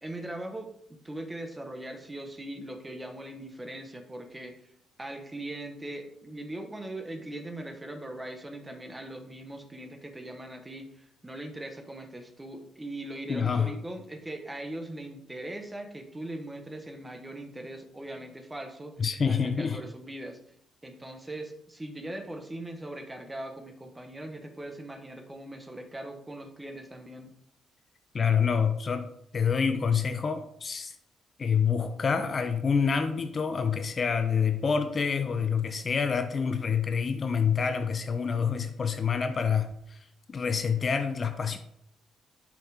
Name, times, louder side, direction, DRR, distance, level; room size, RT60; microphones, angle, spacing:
voice 1, 0.0-0.7 1.0-4.5 5.0-19.0 19.3-20.4 20.8-27.3, right 1 dB, 15° right, 5 dB, 1.2 m, -40 dB
voice 2, 13.3-13.7 19.0-19.8 28.1-29.1 29.3-30.9 31.4-39.7 40.3-41.6, left 6 dB, 40° left, 8 dB, 0.7 m, -27 dB
7.6 x 5.6 x 3.5 m, 0.71 s
cardioid pair, 90°, 0 cm